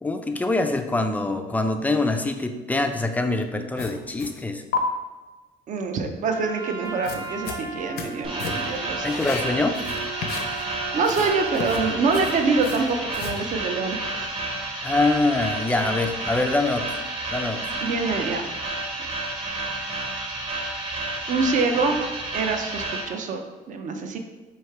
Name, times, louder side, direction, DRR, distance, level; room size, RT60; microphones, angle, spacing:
voice 1, 0.0-4.6 9.0-9.8 14.8-17.0 17.3-17.8, left 2 dB, 10° left, 6 dB, 0.3 m, -24 dB
sound 1, 3.8-4.4 4.7-4.8 6.8-8.1 8.4-8.7 9.0-10.7 11.0-13.4, left 6 dB, 70° left, 0.6 m, -33 dB
voice 2, 5.7-9.1 10.9-14.3 17.8-18.4 21.3-22.0 22.3-23.4 23.7-24.2, right 4 dB, 50° right, 5 dB, 0.5 m, -25 dB
Trumpet, 6.2-12.0, right 5 dB, 75° right, 1.5 m, -36 dB
sound 2, 8.2-23.0, right 2 dB, 35° right, 1.0 m, -31 dB
3.1 x 2.8 x 4.5 m, 1.2 s
cardioid pair, 110°, 17 cm